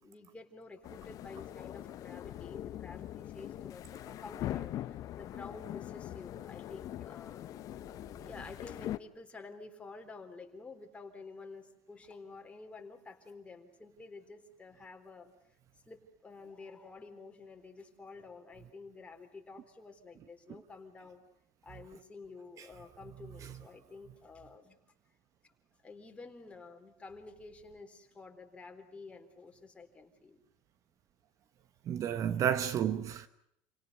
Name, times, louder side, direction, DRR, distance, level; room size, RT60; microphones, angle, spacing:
voice 1, 0.0-7.8 8.2-15.3 15.9-21.2 21.6-24.8 25.8-30.4, left 3 dB, 15° left, 3.9 m, -50 dB
sound 1, 0.8-9.0, left 13 dB, 45° left, 0.9 m, -42 dB
voice 2, 31.9-33.3, right 9 dB, 45° right, 1.1 m, -31 dB
28.5 x 18.0 x 9.4 m
supercardioid pair, 120°, 8 cm